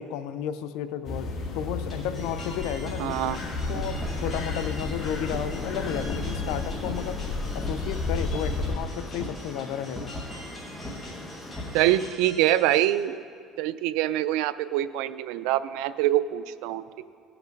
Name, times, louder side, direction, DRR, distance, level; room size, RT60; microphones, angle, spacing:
voice 1, 0.0-3.2 3.7-7.2 7.5-10.1, left 10 dB, 85° left, 11 dB, 0.5 m, -33 dB
sound 1, 1.0-8.7, left 3 dB, 45° left, 1.4 m, -32 dB
sound 2, 1.9-12.9, left 1 dB, 20° left, 3.2 m, -47 dB
voice 2, 3.0-3.4 11.7-13.2 13.6-17.0, right 13 dB, 85° right, 15 dB, 0.3 m, -25 dB
sound 3, 3.1-12.1, left 1 dB, 5° left, 1.1 m, -39 dB
17.5 x 5.9 x 5.3 m, 2.2 s
cardioid pair, 135°, 0 cm